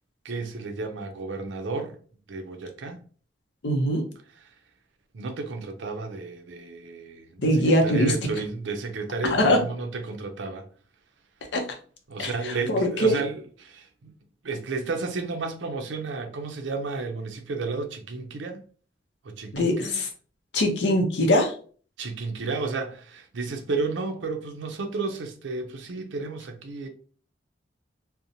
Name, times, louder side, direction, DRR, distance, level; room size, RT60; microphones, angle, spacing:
voice 1, 0.2-2.0 2.3-3.0 4.4-4.5 5.1-10.7 12.1-14.1 14.4-18.6 19.2-20.0 22.0-26.9, right 3 dB, 85° right, 0.5 m, -32 dB
voice 2, 3.6-4.0 7.4-8.1 9.2-9.6 11.5-11.6 12.2-13.1 19.5-20.1 20.5-21.5, equal, 75° left, 0.6 m, -22 dB
2.7 x 2.1 x 2.6 m
head